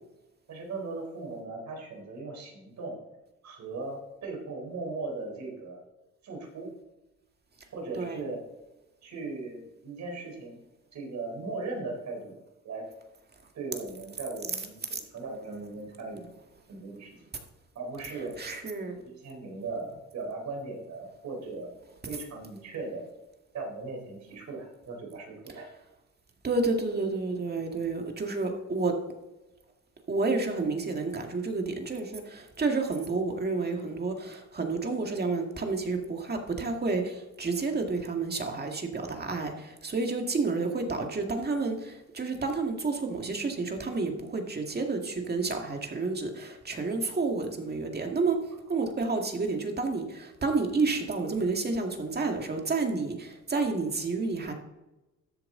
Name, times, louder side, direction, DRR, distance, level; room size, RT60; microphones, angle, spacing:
voice 1, 0.5-3.0 3.4-5.8 6.2-6.7 7.7-8.4 9.0-10.6 10.9-12.4 12.6-12.9 13.5-16.3 16.7-17.1 17.7-18.4 18.9-21.7 22.1-23.0 23.5-25.7 48.7-48.9, right 3 dB, 65° right, 0 dB, 4.0 m, -38 dB
voice 2, 18.4-19.0 26.4-29.0 30.1-54.5, right 3 dB, 35° right, 3 dB, 2.0 m, -30 dB
13.0 x 7.6 x 3.9 m, 1.0 s
cardioid pair, 90°, 30 cm